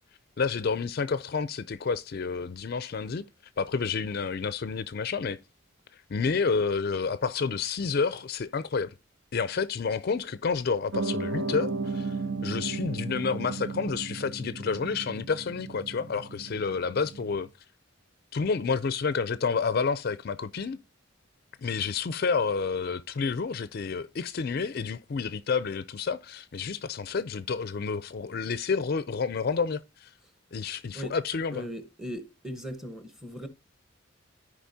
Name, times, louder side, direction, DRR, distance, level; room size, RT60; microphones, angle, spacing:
voice 1, 0.4-3.2 3.6-5.4 5.9-8.9 9.3-17.5 18.3-20.8 21.6-30.1 30.5-31.7, left 5 dB, 50° left, 0.4 m, -29 dB
Piano, 10.9-17.5, right 3 dB, 85° right, 0.9 m, -35 dB
voice 2, 31.5-33.5, equal, 5° right, 1.0 m, -38 dB
13.5 x 5.0 x 2.7 m
head